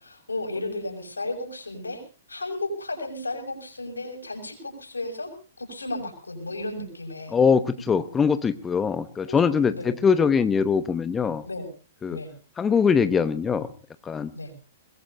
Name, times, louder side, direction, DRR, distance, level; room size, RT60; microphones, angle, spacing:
voice 1, 0.0-2.0 2.3-7.4 9.3-9.4 9.7-9.9 11.4-11.7 12.1-12.3 14.3-14.5, left 2 dB, 85° left, 4 dB, 6.4 m, -34 dB
voice 2, 7.3-11.4 12.0-12.2 12.6-13.7 14.0-14.3, left 6 dB, 15° left, 11 dB, 0.9 m, -22 dB
22.0 x 21.5 x 2.7 m, 0.35 s
figure-of-eight pair, 115°, 0 cm